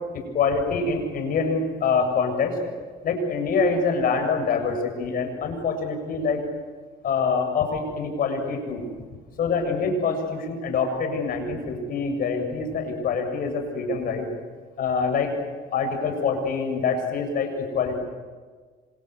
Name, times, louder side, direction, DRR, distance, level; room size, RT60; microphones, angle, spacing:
voice 1, 0.1-2.6 3.0-6.4 7.0-8.8 9.4-14.3 14.8-15.3 15.7-18.0, left 5 dB, 60° left, 5 dB, 7.2 m, -25 dB
27.0 x 27.0 x 8.2 m, 1.5 s
cardioid pair, 110°, 17 cm